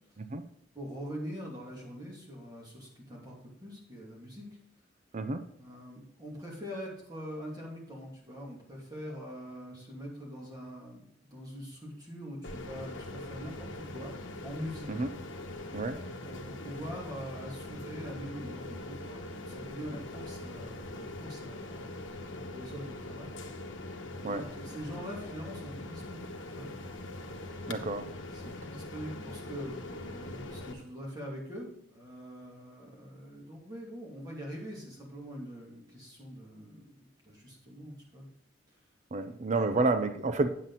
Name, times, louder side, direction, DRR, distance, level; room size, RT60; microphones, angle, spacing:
voice 1, 0.7-4.5 5.6-14.2 14.4-14.9 16.2-22.0 22.3-23.3 24.2-26.7 27.4-27.7 28.2-38.3 39.7-39.9, equal, 20° right, -4 dB, 2.6 m, -43 dB
sound 1, 12.4-30.7, left 2 dB, 75° left, 1.1 m, -42 dB
voice 2, 27.7-28.1 39.1-40.5, right 3 dB, 40° right, 10 dB, 0.5 m, -30 dB
9.2 x 7.4 x 4.1 m, 0.73 s
head